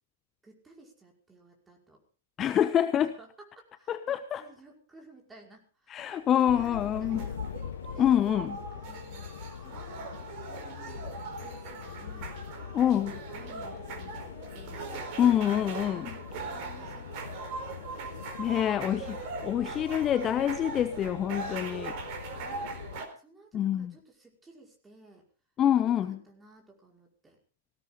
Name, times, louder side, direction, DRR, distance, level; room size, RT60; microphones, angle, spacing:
voice 1, 0.4-2.0 2.5-2.9 3.2-7.4 7.9-8.2 8.7-9.9 10.3-12.4 13.0-14.9 15.6-17.4 18.0-19.1 22.4-25.3 25.7-27.4, right 2 dB, 10° right, -1 dB, 5.3 m, -56 dB
voice 2, 2.4-3.1 3.9-4.4 5.9-7.3 8.0-8.6 12.7-13.1 15.2-16.1 18.4-19.2 19.4-22.0 23.5-23.9 25.6-26.2, left 10 dB, 25° left, 12 dB, 0.9 m, -26 dB
sound 1, 6.1-23.1, right 4 dB, 40° right, 4.3 m, -41 dB
sound 2, 6.5-23.0, left 8 dB, 60° left, 0.9 m, -43 dB
19.5 x 17.0 x 3.9 m, 0.37 s
figure-of-eight pair, 105°, 0 cm